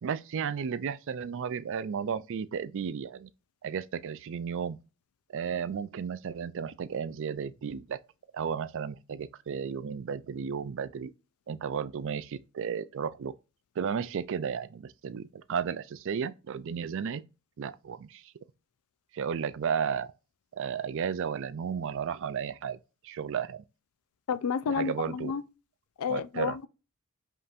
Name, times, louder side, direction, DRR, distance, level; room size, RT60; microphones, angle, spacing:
voice 1, 0.0-3.3 3.6-4.8 5.3-8.0 8.3-11.1 11.5-13.3 13.8-17.2 17.6-18.2 19.1-20.1 20.6-22.8 23.0-23.6 24.7-25.3 26.1-26.6, right 7 dB, 60° right, 0.4 m, -33 dB
voice 2, 24.3-25.4 26.0-26.7, left 6 dB, 80° left, 0.4 m, -30 dB
5.3 x 2.9 x 2.4 m
head